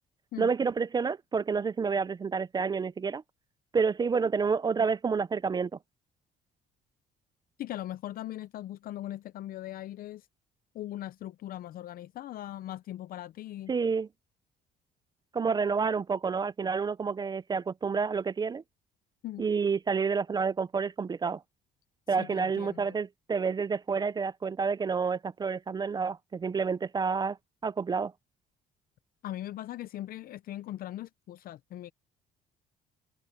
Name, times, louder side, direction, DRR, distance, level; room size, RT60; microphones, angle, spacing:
voice 1, 0.4-3.2 3.7-5.7 13.7-14.1 15.3-18.6 19.4-21.4 22.1-27.4 27.6-28.1, right 5 dB, 25° right, 0.5 m, -29 dB
voice 2, 7.6-10.3 10.7-13.7 19.2-19.5 22.1-23.0 29.2-31.9, left 13 dB, 60° left, 0.6 m, -40 dB
cardioid pair, 110°, 17 cm